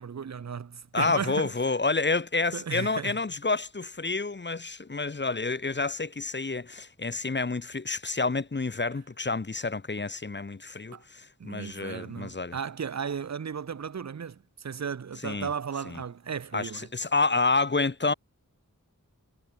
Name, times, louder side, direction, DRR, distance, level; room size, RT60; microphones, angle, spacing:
voice 1, 0.0-1.5 2.5-3.2 10.9-11.0 11.4-16.9 18.1-18.2, right 7 dB, 55° right, 0.5 m, -35 dB
voice 2, 0.9-12.6 15.2-15.5 15.9-16.0 16.5-18.1, left 3 dB, 35° left, 0.7 m, -29 dB
wide cardioid pair, 40°, 33 cm